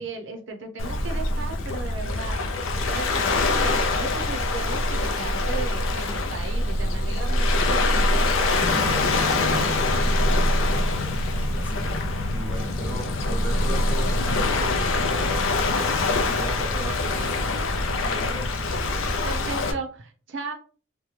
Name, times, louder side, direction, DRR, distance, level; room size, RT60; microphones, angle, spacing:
voice 1, 0.0-2.4 2.9-9.9 19.2-20.5, right 3 dB, 65° right, 4 dB, 0.5 m, -36 dB
Waves surf, 0.8-19.7, left 2 dB, 80° left, 0.4 m, -24 dB
sound 1, 8.6-17.0, left 2 dB, 20° right, 0.6 m, -35 dB
voice 2, 10.6-12.0 12.3-15.4 16.0-17.6 18.0-18.6, equal, 10° left, -2 dB, 0.8 m, -37 dB
2.9 x 2.1 x 3.1 m, 0.38 s
head